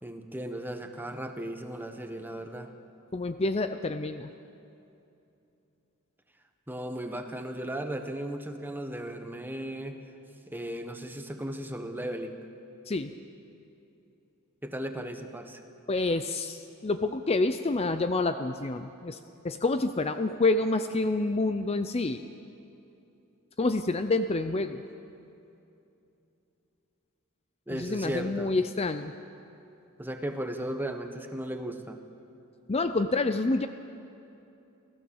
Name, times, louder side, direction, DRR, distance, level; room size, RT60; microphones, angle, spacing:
voice 1, 0.0-2.7 6.7-10.0 10.5-12.4 14.6-15.6 27.7-28.5 30.0-32.0, right 1 dB, 10° right, 6 dB, 1.3 m, -36 dB
voice 2, 3.1-4.3 12.9-13.1 15.9-19.2 19.4-22.3 23.6-24.8 27.7-29.1 32.7-33.7, left 2 dB, 30° left, 9 dB, 0.5 m, -28 dB
28.0 x 15.0 x 7.1 m, 2.8 s
head